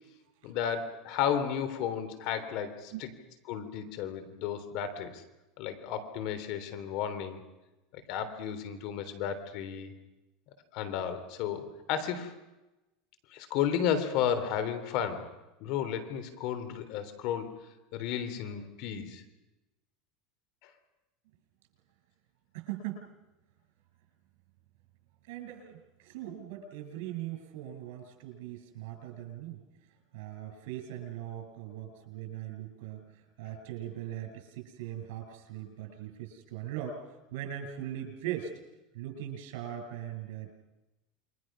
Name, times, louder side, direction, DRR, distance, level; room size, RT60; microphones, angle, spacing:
voice 1, 0.4-3.1 3.5-5.2 5.6-7.4 7.9-9.9 10.7-12.3 13.3-15.3 15.6-17.5 17.9-19.2 20.6-20.7, left 8 dB, 60° left, 11 dB, 3.4 m, -33 dB
voice 2, 22.5-23.0 25.2-29.6 30.1-38.5 38.9-40.5, right 11 dB, 75° right, 3 dB, 7.9 m, -40 dB
28.5 x 23.5 x 6.2 m, 1.0 s
supercardioid pair, 135°, 0 cm